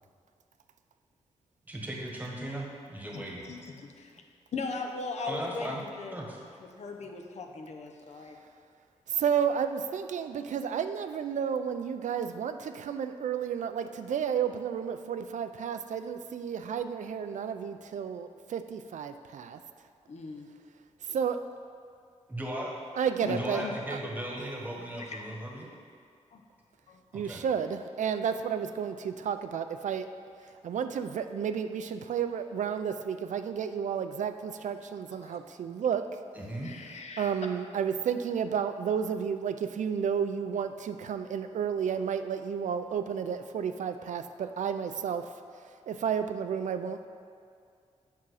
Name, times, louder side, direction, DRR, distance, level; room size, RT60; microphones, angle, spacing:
voice 1, 1.7-3.4 5.3-5.8 6.1-6.4 22.3-22.7 23.3-25.7 27.1-27.4 36.3-36.7, right 1 dB, 15° right, -2 dB, 1.3 m, -37 dB
voice 2, 3.1-4.1 4.5-6.1 6.6-8.4 20.1-20.5 23.2-23.8 24.9-25.2 26.3-26.4 26.9-27.0 35.2-35.4 36.6-37.3, left 4 dB, 65° left, 3 dB, 0.8 m, -39 dB
voice 3, 9.1-19.6 21.1-21.4 23.0-23.6 23.9-24.0 27.1-30.1 30.6-36.2 37.2-45.3 45.9-47.1, right 7 dB, 85° right, 9 dB, 0.4 m, -31 dB
8.3 x 6.1 x 4.8 m, 2.3 s
wide cardioid pair, 135°, 12 cm